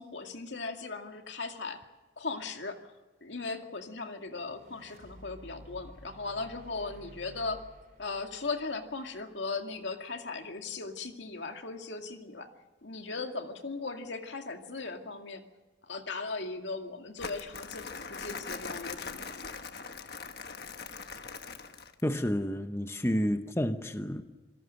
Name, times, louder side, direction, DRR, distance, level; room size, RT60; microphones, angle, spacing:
voice 1, 0.0-1.8 2.2-2.8 3.2-7.6 8.0-12.5 12.8-15.4 15.8-19.5, left 3 dB, 80° left, 2.2 m, -38 dB
sound 1, 4.2-9.6, equal, 45° right, 5.0 m, -53 dB
Crumpling crinkling, 17.2-22.1, left 5 dB, 60° left, 1.4 m, -41 dB
voice 2, 22.0-24.2, equal, 15° left, 0.8 m, -30 dB
27.5 x 18.5 x 6.5 m
head